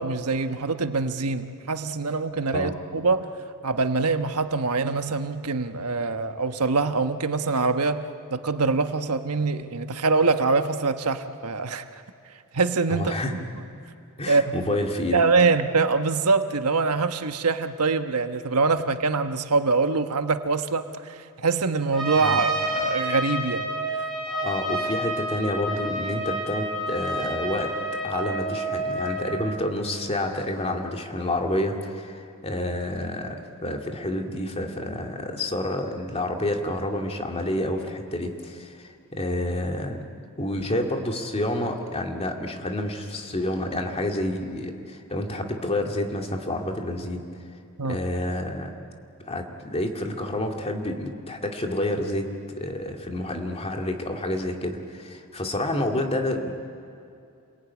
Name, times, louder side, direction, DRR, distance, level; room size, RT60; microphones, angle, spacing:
voice 1, 0.0-3.3 3.6-11.8 12.5-13.4 14.3-14.7 15.1-23.7 23.9-24.0 47.8-48.0, right 4 dB, 85° right, 8 dB, 1.2 m, -24 dB
voice 2, 12.9-13.3 14.2-15.2 22.2-22.4 24.3-27.8 28.0-33.4 33.6-40.0 40.4-47.2 47.9-48.8 49.2-52.3 52.6-56.5, left 1 dB, 30° left, 3 dB, 2.3 m, -29 dB
Trumpet, 21.9-29.3, right 1 dB, ahead, 6.2 m, -29 dB
28.5 x 21.5 x 9.5 m, 2.6 s
head